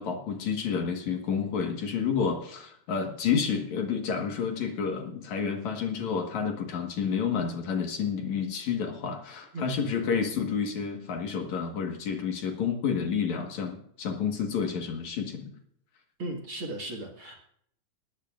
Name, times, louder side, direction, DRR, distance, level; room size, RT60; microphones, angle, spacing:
voice 1, 0.0-15.6, left 6 dB, 60° left, 4 dB, 2.7 m, -30 dB
voice 2, 9.5-9.9 16.2-17.3, right 1 dB, 45° right, 1 dB, 2.2 m, -37 dB
19.5 x 14.0 x 2.5 m, 0.66 s
omnidirectional pair, 3.9 m